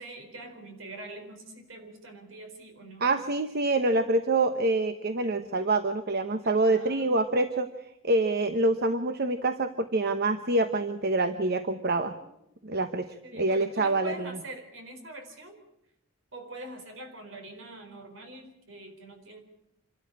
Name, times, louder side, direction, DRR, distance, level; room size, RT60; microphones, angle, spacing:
voice 1, 0.0-3.1 6.4-7.1 12.3-12.4 13.2-15.6 16.3-19.4, right 1 dB, 70° right, 6 dB, 4.4 m, -44 dB
voice 2, 3.0-7.7 8.0-12.1 12.6-13.1 13.3-14.3, right 2 dB, 50° right, 9 dB, 1.0 m, -26 dB
27.0 x 13.0 x 8.6 m, 0.85 s
head